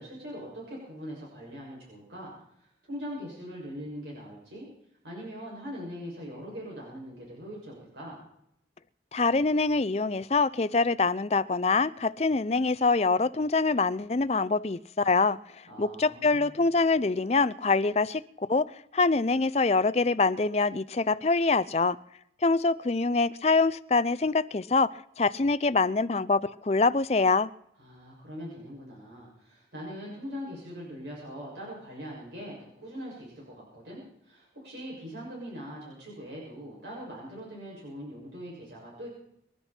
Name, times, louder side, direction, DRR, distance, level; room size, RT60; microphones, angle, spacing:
voice 1, 0.0-4.7 5.0-8.2 15.6-16.5 27.8-39.1, equal, 80° right, 6.7 m, -41 dB
voice 2, 9.1-15.4 15.8-18.2 18.5-22.0 22.4-27.5, left 3 dB, 35° left, 0.5 m, -25 dB
26.0 x 12.0 x 4.4 m
head